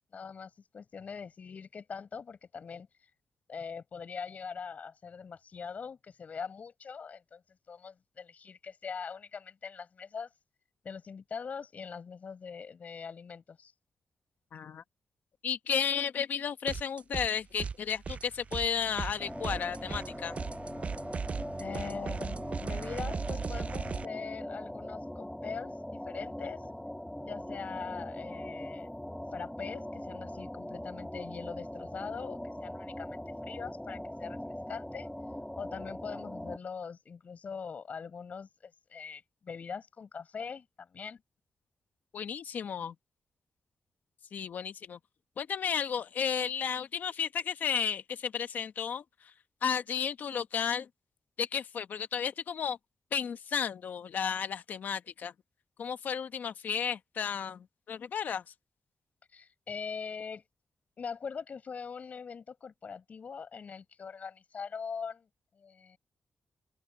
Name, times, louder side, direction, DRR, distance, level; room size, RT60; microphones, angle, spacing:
voice 1, 0.1-2.9 3.5-7.4 7.7-10.3 10.8-13.7 21.6-25.8 26.1-26.6 27.2-28.9 29.3-34.4 34.7-35.1 35.6-41.2 59.3-60.4 61.0-65.3 65.6-66.0, left 6 dB, 55° left, 5.4 m, -42 dB
voice 2, 14.5-14.8 15.4-20.3 42.1-42.9 44.3-45.0 45.4-49.0 49.6-50.9 51.4-52.8 53.1-55.3 55.8-58.4, left 7 dB, 75° left, 1.1 m, -33 dB
sound 1, 16.7-17.3 17.6-24.1, right 5 dB, 45° right, 0.4 m, -38 dB
sound 2, 19.2-36.6, left 1 dB, 5° left, 3.0 m, -41 dB
open air
cardioid pair, 90°, 3 cm